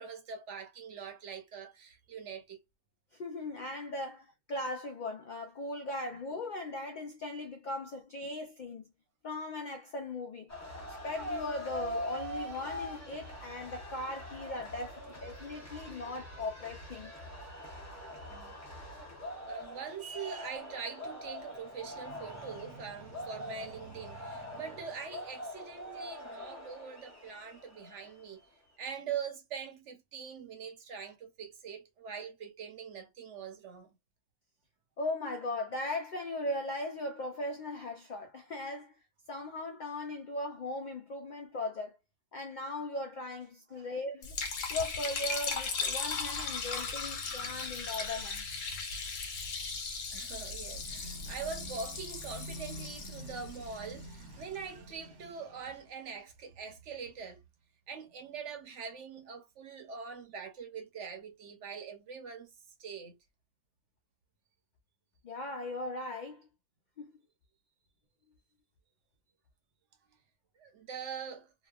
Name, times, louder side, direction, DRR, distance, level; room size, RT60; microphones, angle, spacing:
voice 1, 0.0-2.6 8.2-8.3 18.3-18.5 19.4-28.4 28.8-34.0 43.7-43.9 47.3-47.6 50.1-57.4 57.9-62.5 62.8-63.2 70.6-71.5, right 6 dB, 70° right, 1.0 m, -43 dB
voice 2, 3.1-8.8 9.2-10.5 10.8-17.1 35.0-38.9 39.3-42.0 42.3-44.4 44.7-48.5 65.2-66.5 67.0-67.2, left 2 dB, 65° left, 0.4 m, -38 dB
sound 1, 10.5-28.3, left 1 dB, 15° left, 0.8 m, -43 dB
Liquid, 44.2-54.4, left 4 dB, 85° left, 1.2 m, -37 dB
2.9 x 2.2 x 2.3 m
omnidirectional pair, 1.3 m